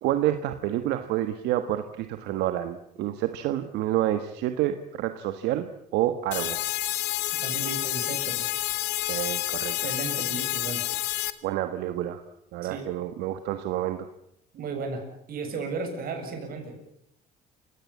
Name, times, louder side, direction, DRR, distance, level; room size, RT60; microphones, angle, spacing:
voice 1, 0.0-6.6 9.1-9.9 11.4-12.2 12.5-14.1, right 13 dB, 90° right, 9 dB, 1.5 m, -28 dB
sound 1, 6.3-11.3, left 16 dB, 90° left, 1.4 m, -29 dB
voice 2, 7.4-8.4 9.8-10.8 12.6-12.9 14.5-16.7, right 4 dB, 60° right, 5 dB, 7.7 m, -34 dB
29.0 x 17.0 x 8.5 m, 0.76 s
cardioid pair, 110°, 17 cm